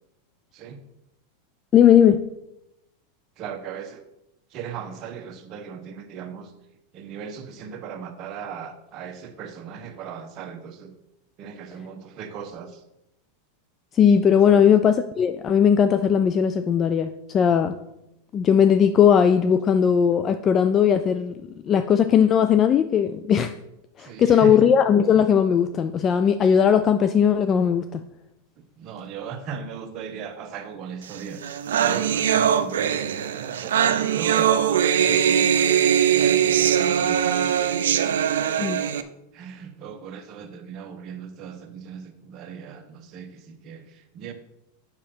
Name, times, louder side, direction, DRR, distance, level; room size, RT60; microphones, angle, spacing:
voice 1, 1.7-2.3 13.9-17.8 18.3-21.4 21.6-23.5 24.0-28.0 38.6-38.9, left 8 dB, 30° left, 10 dB, 0.4 m, -18 dB
voice 2, 3.4-4.0 4.5-6.5 6.9-10.9 11.4-12.8 14.4-14.7 24.0-24.6 28.8-31.4 31.8-35.9 36.2-37.6 38.0-38.7 39.3-44.3, right 7 dB, 45° right, 6 dB, 1.0 m, -38 dB
sound 1, 31.1-31.2 31.4-39.0, right 9 dB, 85° right, 0.5 m, -21 dB
7.2 x 6.2 x 4.4 m, 0.87 s
supercardioid pair, 125°, 0 cm